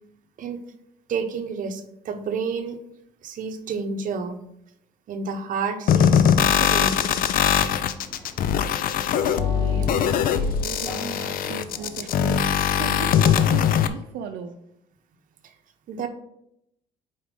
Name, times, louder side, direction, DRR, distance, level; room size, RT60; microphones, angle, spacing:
voice 1, 1.1-2.8 3.2-4.4 5.1-7.2 15.9-16.1, right 5 dB, 50° right, 6 dB, 0.8 m, -30 dB
sound 1, 5.9-13.9, left 8 dB, 60° left, 0.5 m, -21 dB
sound 2, 8.0-13.7, equal, 25° left, 2.3 m, -41 dB
voice 2, 9.2-14.6, right 7 dB, 80° right, 4 dB, 0.6 m, -37 dB
4.9 x 4.3 x 5.1 m, 0.78 s
cardioid pair, 110°, 17 cm